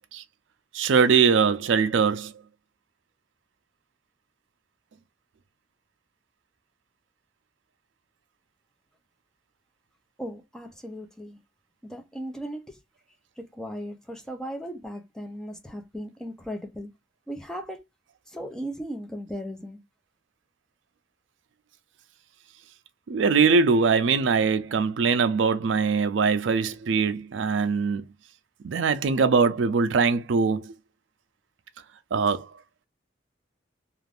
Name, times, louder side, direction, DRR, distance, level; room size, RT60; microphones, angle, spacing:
voice 1, 0.7-2.3 23.1-28.1 28.6-30.7 32.1-32.5, right 5 dB, 85° right, 0.4 m, -22 dB
voice 2, 10.2-11.4 11.8-12.8 13.4-16.9 17.3-17.8 18.3-19.8, equal, 5° left, 0.5 m, -37 dB
2.5 x 2.4 x 3.3 m
head